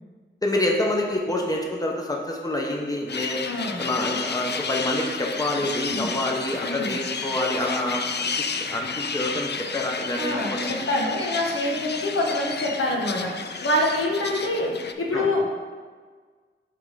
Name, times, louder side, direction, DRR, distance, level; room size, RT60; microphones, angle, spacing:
voice 1, 0.4-3.4 3.8-8.3 8.6-10.7 15.1-15.3, left 1 dB, 15° left, -1 dB, 0.8 m, -27 dB
sound 1, 3.1-14.9, left 5 dB, 55° left, 0.4 m, -32 dB
voice 2, 3.4-3.8 5.9-6.1 6.6-7.0 10.2-15.5, left 1 dB, 85° left, -2 dB, 1.1 m, -26 dB
6.1 x 3.5 x 4.8 m, 1.5 s
wide cardioid pair, 80°, 21 cm